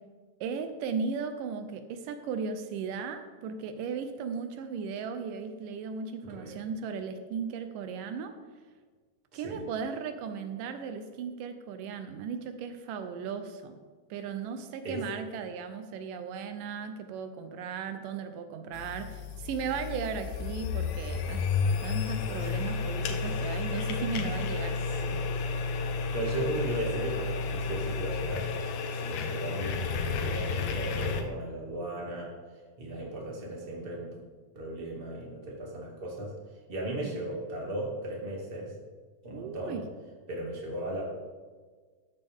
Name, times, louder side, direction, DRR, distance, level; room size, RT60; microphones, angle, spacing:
voice 1, 0.4-8.3 9.3-13.8 14.1-24.8 37.0-37.2 39.3-39.8, right 6 dB, 90° right, 8 dB, 2.4 m, -36 dB
voice 2, 6.2-6.6 9.3-9.6 14.8-15.0 23.2-23.4 24.9-25.2 26.1-32.3 32.8-34.1 34.5-36.3 36.7-38.7 39.2-39.8 40.3-41.1, right 1 dB, 20° right, -3 dB, 2.0 m, -36 dB
sound 1, 18.7-31.2, left 5 dB, 80° left, 2.2 m, -32 dB
13.5 x 8.9 x 3.6 m, 1.5 s
omnidirectional pair, 3.7 m